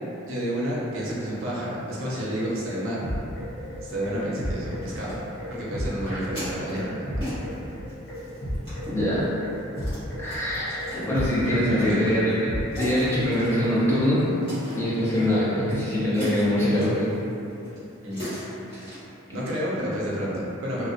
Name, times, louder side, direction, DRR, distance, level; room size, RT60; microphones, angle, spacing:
voice 1, 0.2-3.0 3.8-5.2 5.5-7.2 11.5-12.1 18.0-18.3 19.3-20.9, equal, 75° right, -6 dB, 0.6 m, -30 dB
sound 1, 0.8-19.0, equal, 25° left, 1.1 m, -40 dB
sound 2, 2.7-13.0, equal, 55° left, 0.7 m, -33 dB
voice 2, 8.9-9.2 10.2-12.3 12.7-14.3 14.8-17.1, equal, 10° left, -9 dB, 0.4 m, -23 dB
2.4 x 2.1 x 2.5 m, 2.9 s
head